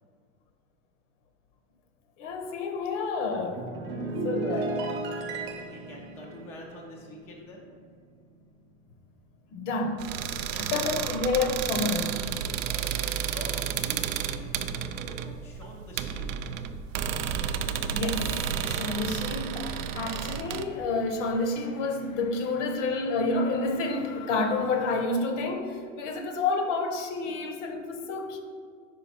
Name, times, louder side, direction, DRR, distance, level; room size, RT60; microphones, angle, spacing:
voice 1, 2.2-3.6 4.2-4.8 9.5-10.1 10.6-12.2 17.9-18.3 18.6-28.4, left 3 dB, 65° left, 6 dB, 0.9 m, -29 dB
sound 1, 3.3-7.9 8.2-8.5, right 3 dB, 30° right, 0.9 m, -35 dB
voice 2, 5.6-7.7 10.4-10.8 11.1-11.3 12.6-16.5, left 1 dB, 5° left, -2 dB, 0.3 m, -46 dB
sound 2, 10.0-20.6, right 9 dB, 75° right, 0.5 m, -31 dB
sound 3, 17.6-25.1, left 7 dB, 85° left, 0.6 m, -47 dB
5.0 x 4.9 x 4.3 m, 2.1 s
supercardioid pair, 135°, 40 cm